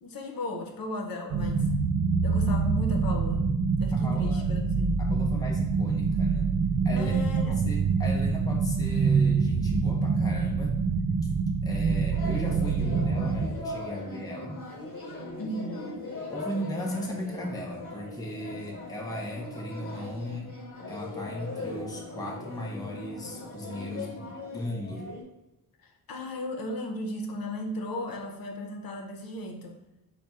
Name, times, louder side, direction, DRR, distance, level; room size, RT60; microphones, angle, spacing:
voice 1, 0.0-1.7 2.2-3.4 3.8-5.0 7.0-7.6 15.4-16.0 25.8-29.8, left 1 dB, 70° left, 3 dB, 0.8 m, -35 dB
sound 1, 1.3-13.5, right 4 dB, 50° right, 0.4 m, -25 dB
voice 2, 3.9-4.5 5.0-6.5 6.8-10.7 11.2-11.3 11.6-14.6 16.3-20.5 20.9-25.1, left 1 dB, 10° left, -1 dB, 0.6 m, -37 dB
sound 2, 12.1-25.2, left 2 dB, 35° left, 1.2 m, -40 dB
4.8 x 2.2 x 4.2 m, 0.96 s
wide cardioid pair, 150°, 36 cm